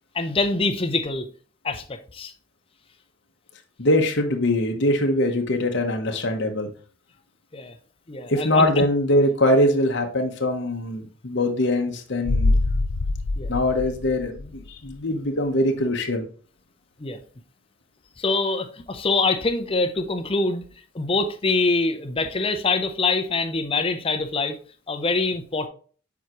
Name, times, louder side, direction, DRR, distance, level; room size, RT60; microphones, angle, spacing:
voice 1, 0.1-1.3 1.6-2.3 7.5-7.7 8.1-8.9 13.4-13.5 17.0-17.2 18.2-20.6 20.9-24.6 24.9-25.7, left 3 dB, 25° left, 0.6 m, -24 dB
voice 2, 3.8-6.7 8.3-12.5 13.5-16.3, left 1 dB, 55° left, 0.9 m, -22 dB
sound 1, 12.2-14.9 15.2-15.3, left 2 dB, 90° left, 0.6 m, -25 dB
7.2 x 4.6 x 3.0 m
head